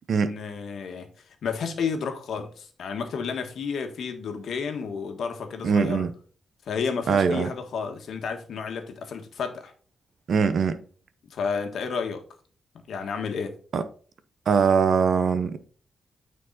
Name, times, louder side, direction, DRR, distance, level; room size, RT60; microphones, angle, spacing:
voice 1, 0.1-1.1 1.4-6.1 6.7-9.7 11.3-12.2 12.9-13.6, left 5 dB, 70° left, 1.5 m, -31 dB
voice 2, 5.6-6.1 7.1-7.5 10.3-10.8 13.7-13.8 14.5-15.7, right 6 dB, 55° right, 0.8 m, -22 dB
9.0 x 4.7 x 4.1 m
wide cardioid pair, 155°, 0 cm